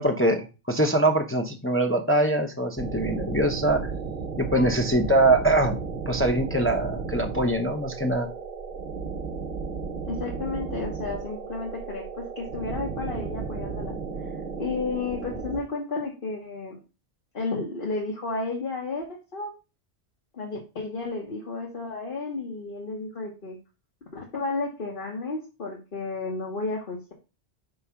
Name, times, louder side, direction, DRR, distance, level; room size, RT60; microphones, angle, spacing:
voice 1, 0.0-3.8 4.4-5.8 6.1-8.3, right 1 dB, 15° left, 3 dB, 0.6 m, -23 dB
sound 1, 2.8-15.6, right 5 dB, 50° right, 0.7 m, -34 dB
voice 2, 10.1-13.9 14.6-16.8 17.3-19.1 19.3-19.5 20.3-23.6 24.1-27.1, left 3 dB, 55° left, -2 dB, 1.4 m, -32 dB
4.8 x 3.8 x 5.6 m, 0.31 s
omnidirectional pair, 1.1 m